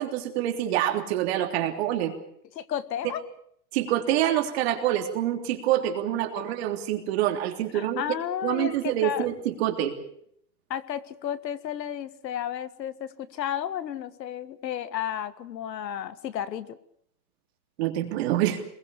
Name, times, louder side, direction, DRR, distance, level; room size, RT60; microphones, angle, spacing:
voice 1, 0.0-2.1 3.7-8.0 8.4-9.9 17.8-18.6, right 12 dB, 40° right, 5 dB, 3.4 m, -26 dB
voice 2, 2.6-3.2 6.4-6.5 7.7-9.3 10.7-16.8, left 10 dB, 80° left, 15 dB, 1.8 m, -32 dB
26.5 x 21.5 x 7.1 m, 0.69 s
supercardioid pair, 170°, 49 cm